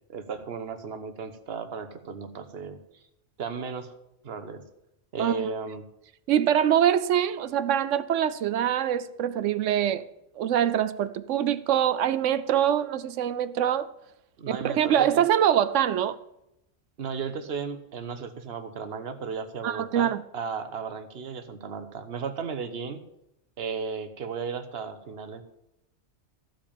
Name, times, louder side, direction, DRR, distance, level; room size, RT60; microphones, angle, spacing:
voice 1, 0.1-3.0 3.4-3.9 4.2-4.6 5.1-5.9 14.4-15.2 17.0-23.0 23.6-25.4, right 5 dB, 60° right, 1.3 m, -35 dB
voice 2, 6.3-10.0 10.4-13.9 14.6-16.2 19.6-20.2, right 10 dB, 85° right, 1.0 m, -24 dB
14.5 x 5.2 x 8.8 m
omnidirectional pair, 1.2 m